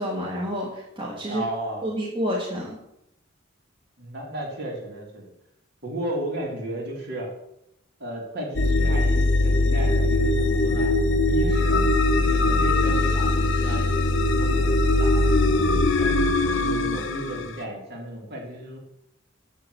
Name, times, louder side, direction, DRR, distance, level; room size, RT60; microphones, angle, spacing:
voice 1, 0.0-1.4 1.8-2.8, equal, 25° right, -5 dB, 2.0 m, -29 dB
voice 2, 1.3-1.9 4.0-5.3 5.8-7.3 8.0-10.9 11.2-11.8 12.2-16.1 16.4-18.8, right 1 dB, 50° right, -2 dB, 3.3 m, -34 dB
sound 1, 8.5-17.6, left 2 dB, 65° left, 0.9 m, -21 dB
8.1 x 7.6 x 6.5 m, 0.80 s
head